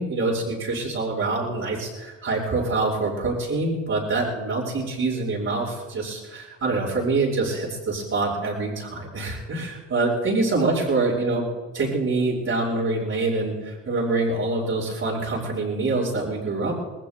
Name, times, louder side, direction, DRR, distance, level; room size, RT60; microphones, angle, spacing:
voice 1, 0.0-16.8, right 3 dB, 55° right, -8 dB, 5.9 m, -25 dB
27.5 x 20.5 x 2.3 m, 1.3 s
cardioid pair, 90°, 30 cm